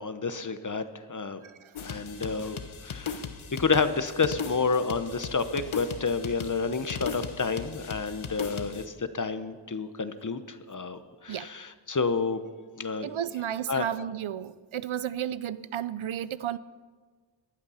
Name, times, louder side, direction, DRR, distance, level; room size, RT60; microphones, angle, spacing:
voice 1, 0.0-1.4 1.8-2.6 2.8-3.2 3.5-12.4 12.7-13.1 13.7-13.8, left 4 dB, 40° left, 1.0 m, -29 dB
sound 1, 1.7-8.9, left 6 dB, 80° left, 1.1 m, -38 dB
voice 2, 13.0-16.6, right 10 dB, 80° right, 0.7 m, -33 dB
19.0 x 12.0 x 5.7 m
wide cardioid pair, 105°, 47 cm